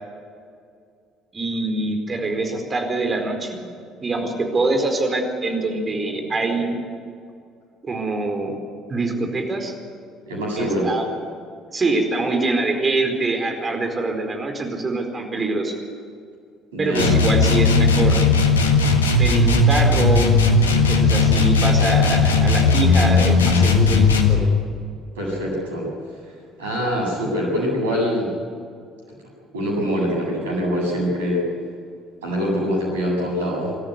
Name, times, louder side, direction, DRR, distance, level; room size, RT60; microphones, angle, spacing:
voice 1, 1.3-3.6 4.0-6.8 7.8-8.6 8.9-9.7 10.6-11.0 11.7-15.7 16.8-18.3 19.2-20.3 20.9-24.5, right 2 dB, 30° right, 4 dB, 4.6 m, -24 dB
voice 2, 10.3-10.9 16.7-17.1 25.1-25.9 26.6-28.3 29.5-31.4 32.2-33.7, equal, 75° right, -2 dB, 7.7 m, -24 dB
sound 1, 16.9-24.4, left 3 dB, 80° left, 1.7 m, -17 dB
25.5 x 14.0 x 9.7 m, 2.4 s
figure-of-eight pair, 55°, 0 cm